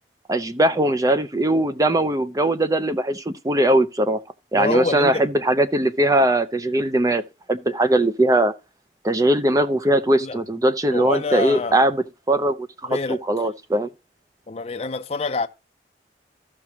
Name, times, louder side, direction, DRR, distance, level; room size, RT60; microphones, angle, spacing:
voice 1, 0.3-4.2 4.5-7.2 7.5-8.5 9.0-13.9, right 1 dB, 20° right, 0.5 m, -20 dB
voice 2, 4.5-5.3 10.2-10.4 10.9-11.8 12.8-13.2 14.5-15.5, left 3 dB, 35° left, 0.5 m, -26 dB
14.5 x 6.0 x 2.9 m
head